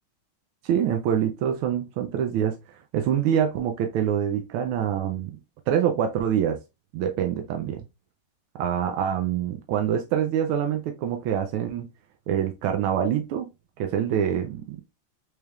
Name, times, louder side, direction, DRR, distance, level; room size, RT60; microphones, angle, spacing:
voice 1, 0.6-5.4 5.7-6.6 6.9-7.8 8.5-11.9 12.3-13.5 13.8-14.9, right 9 dB, 90° right, 1.5 m, -25 dB
4.2 x 3.3 x 2.3 m
omnidirectional pair, 2.3 m